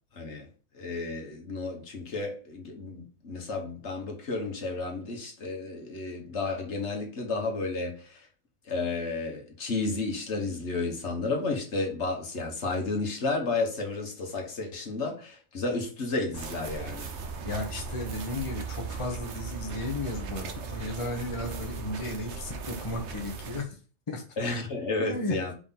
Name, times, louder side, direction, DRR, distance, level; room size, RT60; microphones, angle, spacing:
voice 1, 0.1-0.5 0.7-8.3 8.6-17.1 24.4-25.5, left 3 dB, 70° left, 1.6 m, -32 dB
sound 1, 16.3-23.6, right 5 dB, 70° right, 1.1 m, -38 dB
voice 2, 17.4-23.8 24.1-24.2 25.0-25.5, left 2 dB, 25° left, 1.1 m, -34 dB
4.9 x 4.0 x 5.7 m
omnidirectional pair, 1.2 m